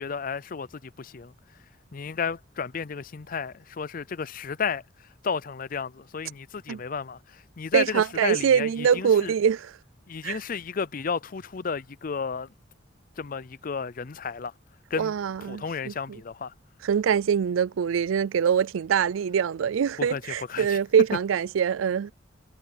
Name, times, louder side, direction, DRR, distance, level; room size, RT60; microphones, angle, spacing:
voice 1, 0.0-1.3 1.9-9.3 10.1-12.5 13.2-14.5 14.9-15.1 15.4-16.5 20.0-20.2 20.5-20.8, left 5 dB, 45° left, 0.5 m, -33 dB
voice 2, 7.7-9.7 10.2-10.4 15.0-15.9 16.8-22.1, right 7 dB, 90° right, 0.4 m, -24 dB
head